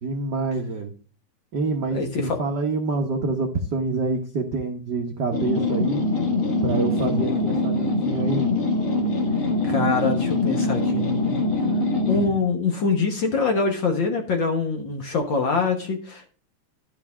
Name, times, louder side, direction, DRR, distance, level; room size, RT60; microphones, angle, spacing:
voice 1, 0.0-0.9 1.5-6.0 6.6-8.5, right 3 dB, 70° right, 4 dB, 0.9 m, -26 dB
voice 2, 1.9-2.4 9.7-11.4 12.1-16.3, left 4 dB, 50° left, 3 dB, 1.6 m, -24 dB
sound 1, 5.3-12.4, left 2 dB, 30° left, 1.8 m, -23 dB
12.0 x 5.8 x 3.5 m, 0.40 s
omnidirectional pair, 3.4 m